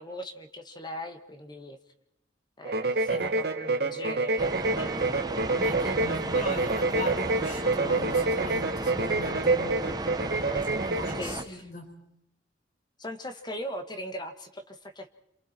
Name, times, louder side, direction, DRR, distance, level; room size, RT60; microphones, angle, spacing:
voice 1, 0.0-1.8 2.6-5.1 5.8-5.9 10.5-10.7 11.2-11.7 13.0-15.1, equal, 25° left, 7 dB, 1.8 m, -40 dB
sound 1, 2.7-11.2, right 3 dB, 60° right, 1.4 m, -27 dB
sound 2, 4.4-11.4, right 2 dB, 20° right, 1.0 m, -34 dB
voice 2, 5.4-9.9 10.7-11.9, left 1 dB, 45° left, 1 dB, 6.0 m, -40 dB
28.5 x 27.0 x 4.5 m, 0.83 s
head